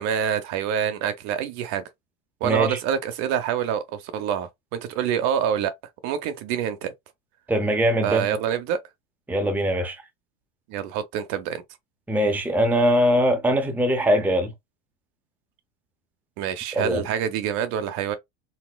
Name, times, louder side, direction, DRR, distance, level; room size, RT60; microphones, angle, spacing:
voice 1, 0.0-1.8 2.4-5.7 6.0-6.9 8.0-8.8 10.7-11.6 16.4-18.1, right 8 dB, 55° right, 0.8 m, -26 dB
voice 2, 2.4-2.8 7.5-8.2 9.3-10.0 12.1-14.5 16.8-17.0, equal, 5° right, 0.7 m, -21 dB
4.1 x 2.1 x 2.2 m
supercardioid pair, 105°, 33 cm